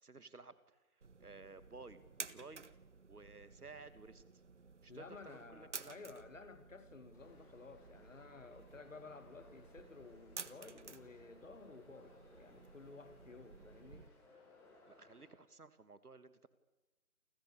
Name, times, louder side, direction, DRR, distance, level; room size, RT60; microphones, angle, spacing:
voice 1, 0.0-2.6 3.1-4.2 4.8-6.1 14.9-16.5, right 3 dB, 75° right, 2.7 m, -55 dB
sound 1, 1.0-14.1, right 4 dB, 50° right, 1.4 m, -54 dB
voice 2, 4.9-14.1, left 4 dB, 55° left, 2.6 m, -54 dB
sound 2, 7.1-15.3, left 2 dB, 5° left, 5.7 m, -65 dB
29.0 x 26.5 x 7.0 m
figure-of-eight pair, 165°, 45 cm